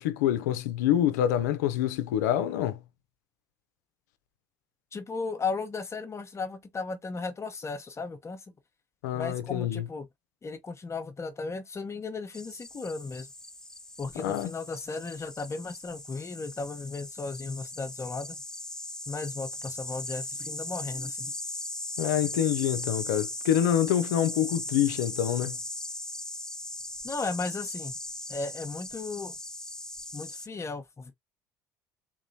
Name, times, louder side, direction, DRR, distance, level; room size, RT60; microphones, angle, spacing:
voice 1, 0.0-2.8 9.0-9.8 14.2-14.5 22.0-25.6, left 11 dB, 85° left, 0.5 m, -26 dB
voice 2, 4.9-8.4 9.1-10.1 10.4-13.3 14.0-18.4 19.1-21.3 27.0-28.0 28.3-29.3 30.1-31.1, left 4 dB, 30° left, 0.8 m, -35 dB
sound 1, 12.3-30.5, left 1 dB, 5° left, 0.3 m, -38 dB
3.8 x 3.0 x 2.7 m
hypercardioid pair, 65°, 9 cm